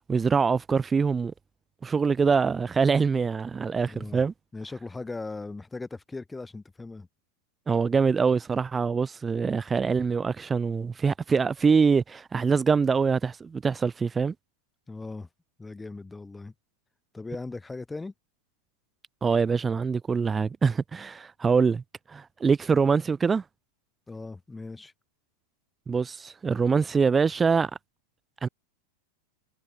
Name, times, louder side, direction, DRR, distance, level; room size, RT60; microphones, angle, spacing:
voice 1, 0.1-1.3 1.8-4.3 7.7-14.3 19.2-21.8 22.1-23.4 25.9-27.7 28.4-28.5, right 5 dB, 15° right, 0.4 m, -24 dB
voice 2, 3.8-4.3 4.5-7.1 14.9-15.3 15.6-16.5 17.1-18.1 24.1-24.9, left 3 dB, 10° left, 1.4 m, -38 dB
figure-of-eight pair, 90°, 0 cm